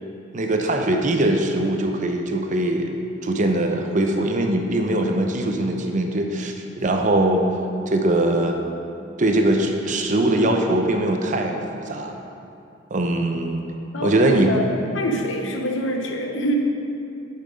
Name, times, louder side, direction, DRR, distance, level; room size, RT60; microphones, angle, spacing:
voice 1, 0.3-2.9 3.2-7.4 7.9-8.6 9.2-12.1 12.9-13.6 14.0-14.5, right 1 dB, 40° right, 3 dB, 0.6 m, -21 dB
voice 2, 13.9-14.7 14.9-16.5, equal, 70° left, 2 dB, 0.9 m, -25 dB
7.3 x 5.7 x 5.0 m, 2.7 s
head